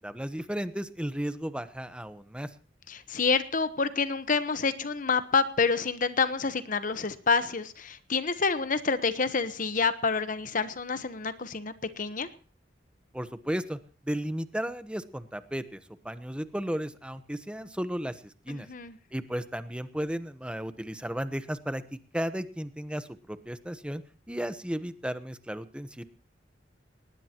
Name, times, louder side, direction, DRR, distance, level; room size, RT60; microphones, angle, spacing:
voice 1, 0.0-2.5 13.1-13.8 14.0-18.7 19.1-21.8 22.1-24.0 24.3-26.0, equal, 5° right, 11 dB, 1.0 m, -34 dB
voice 2, 2.9-12.3 18.5-19.0, left 4 dB, 50° left, 12 dB, 1.1 m, -28 dB
20.0 x 18.5 x 3.0 m, 0.40 s
head